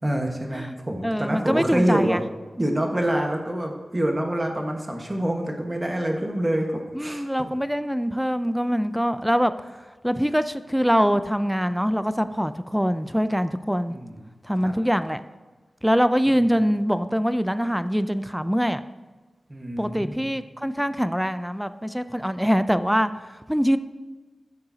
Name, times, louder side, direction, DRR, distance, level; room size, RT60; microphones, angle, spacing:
voice 1, 0.0-2.2 2.6-7.5 13.9-14.2 14.6-14.8 16.3-16.5 19.5-20.3, right 1 dB, 20° right, 1 dB, 1.3 m, -26 dB
voice 2, 1.0-2.2 6.9-9.5 10.0-14.0 14.4-15.2 15.8-18.8 19.8-23.1 23.5-23.8, equal, ahead, 12 dB, 0.4 m, -23 dB
13.0 x 6.7 x 2.8 m, 1.3 s
wide cardioid pair, 90°, 0 cm